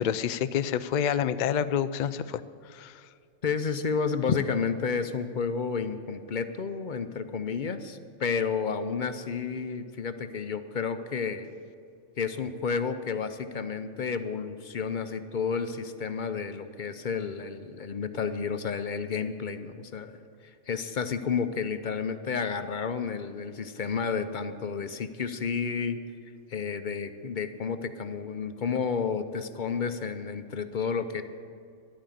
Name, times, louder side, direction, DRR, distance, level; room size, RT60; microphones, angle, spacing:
voice 1, 0.0-2.4 2.7-2.9, left 9 dB, 80° left, 13 dB, 0.4 m, -28 dB
voice 2, 3.4-11.5 12.2-20.2 20.7-26.0 26.5-31.2, left 5 dB, 45° left, 10 dB, 0.7 m, -31 dB
11.5 x 9.1 x 9.2 m, 2.3 s
omnidirectional pair, 1.3 m